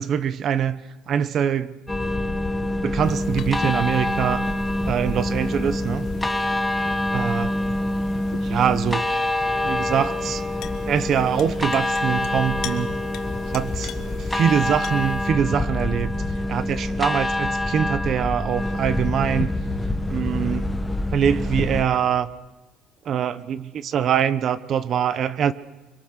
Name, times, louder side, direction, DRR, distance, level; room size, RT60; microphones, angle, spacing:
voice 1, 0.0-1.8 2.8-4.5 4.8-6.1 7.1-7.5 8.4-9.0 9.6-10.4 10.9-12.9 13.5-19.5 20.1-20.7 21.1-22.3 23.0-25.5, right 8 dB, 35° right, 0.9 m, -24 dB
sound 1, 1.9-21.8, left 1 dB, 5° left, 1.3 m, -25 dB
sound 2, 3.0-15.3, left 12 dB, 55° left, 1.7 m, -43 dB
25.0 x 24.5 x 6.6 m
cardioid pair, 165°, 0 cm